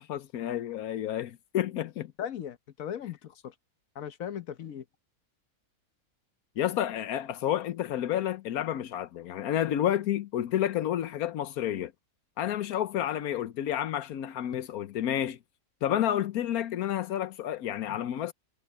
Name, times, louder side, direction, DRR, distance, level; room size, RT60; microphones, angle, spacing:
voice 1, 0.0-2.1 6.6-11.9 12.4-15.4 15.8-18.3, left 11 dB, 85° left, 1.3 m, -30 dB
voice 2, 2.2-3.5 3.9-4.8, left 9 dB, 70° left, 1.3 m, -38 dB
omnidirectional pair, 1.5 m